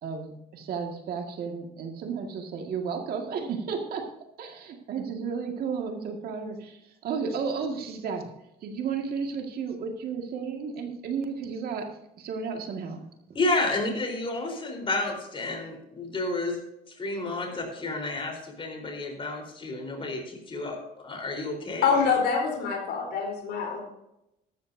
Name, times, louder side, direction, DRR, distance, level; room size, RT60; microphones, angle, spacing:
voice 1, 0.0-4.1 4.4-8.3 8.6-11.8 12.2-13.0, right 5 dB, 65° right, 3 dB, 2.0 m, -33 dB
voice 2, 13.3-16.6 16.9-21.9, left 2 dB, 30° left, 2 dB, 4.0 m, -31 dB
voice 3, 21.8-23.8, left 5 dB, 80° left, 1 dB, 4.0 m, -25 dB
14.0 x 12.5 x 2.7 m, 0.86 s
cardioid pair, 110°, 17 cm